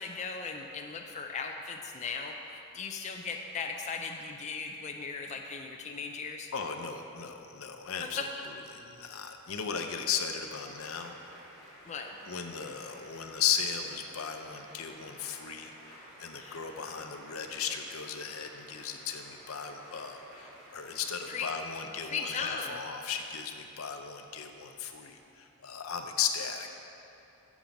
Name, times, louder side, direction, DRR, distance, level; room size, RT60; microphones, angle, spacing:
voice 1, 0.0-6.5 8.2-8.3 11.9-12.1 16.4-16.6 21.3-21.5 21.7-22.8, left 5 dB, 35° left, 2 dB, 0.4 m, -37 dB
voice 2, 6.5-8.2 8.7-11.2 12.3-26.7, left 7 dB, 75° left, 5 dB, 0.6 m, -36 dB
sound 1, 10.2-21.5, right 1 dB, 65° right, 2.1 m, -53 dB
7.2 x 7.1 x 5.2 m, 2.8 s
head